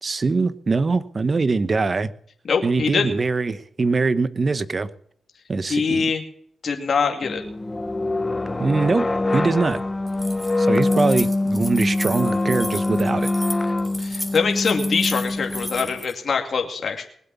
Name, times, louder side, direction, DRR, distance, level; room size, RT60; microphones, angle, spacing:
voice 1, 0.0-2.1 2.6-4.9 5.5-6.1 8.6-9.8 10.6-13.3, right 4 dB, 45° right, 15 dB, 1.0 m, -22 dB
voice 2, 2.4-3.1 5.6-6.2 6.6-7.4 14.0-17.0, left 5 dB, 60° left, 2 dB, 2.4 m, -23 dB
sound 1, 7.2-16.0, left 2 dB, 25° left, 0.9 m, -24 dB
Keys jangling, 10.1-16.1, equal, ahead, 2.5 m, -34 dB
20.0 x 8.1 x 7.1 m, 0.66 s
cardioid pair, 65°, 0 cm